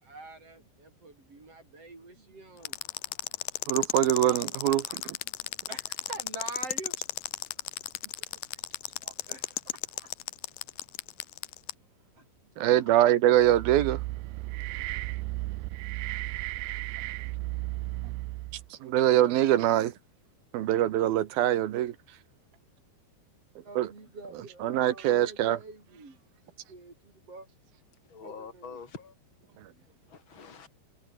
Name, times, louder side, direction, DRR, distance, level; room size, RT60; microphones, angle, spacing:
voice 1, 0.0-2.8 4.9-5.1 5.4-6.9 9.3-9.5 9.9-10.1 12.2-12.3 23.6-26.2 26.7-27.5 28.2-28.8 29.7-29.8, right 3 dB, 35° right, 6.3 m, -46 dB
sound 1, 2.6-11.7, left 17 dB, 80° left, 2.0 m, -34 dB
voice 2, 3.7-5.0 12.6-14.0 18.8-19.9 20.5-21.9 23.8-23.9 24.6-25.6, right 12 dB, 70° right, 2.8 m, -23 dB
sound 2, 13.4-18.7, right 19 dB, 85° right, 2.8 m, -34 dB
voice 3, 28.1-29.2 29.9-30.7, left 5 dB, 30° left, 5.3 m, -45 dB
omnidirectional pair, 4.9 m